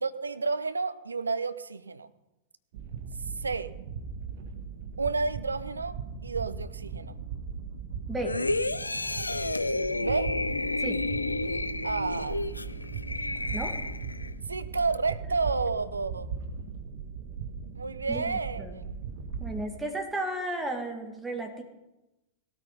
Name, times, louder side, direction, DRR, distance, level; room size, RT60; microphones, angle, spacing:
voice 1, 0.0-2.1 3.4-3.7 5.0-6.0 6.2-7.2 10.0-10.3 11.8-12.4 14.5-16.3 17.7-19.0, right 4 dB, 80° right, 13 dB, 0.9 m, -30 dB
sound 1, 2.7-19.6, right 5 dB, 55° right, 1.9 m, -38 dB
sound 2, 8.2-14.3 14.8-15.0, left 2 dB, 85° left, 0.5 m, -31 dB
voice 2, 18.1-18.8 19.4-21.6, right 1 dB, 10° right, 3 dB, 2.2 m, -34 dB
18.0 x 13.0 x 5.4 m, 0.97 s
figure-of-eight pair, 95°, 0 cm